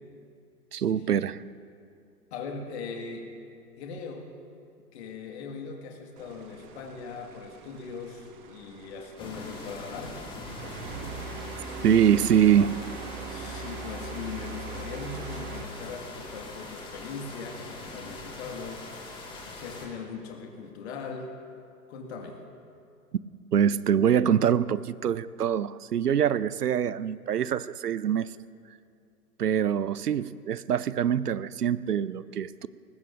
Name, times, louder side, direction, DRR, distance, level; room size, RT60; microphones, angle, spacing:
voice 1, 0.7-1.4 11.8-12.8 23.5-28.3 29.4-32.7, right 9 dB, 75° right, 18 dB, 0.7 m, -24 dB
voice 2, 2.3-3.3 3.8-4.3 4.9-10.3 11.8-12.0 13.2-21.3 21.9-22.4, left 5 dB, 45° left, 2 dB, 1.9 m, -40 dB
sound 1, 6.2-15.6, right 4 dB, 30° right, 1.3 m, -42 dB
sound 2, 9.2-19.9, left 2 dB, 10° left, 1.9 m, -42 dB
21.0 x 19.5 x 2.6 m, 2.4 s
figure-of-eight pair, 115°, 46 cm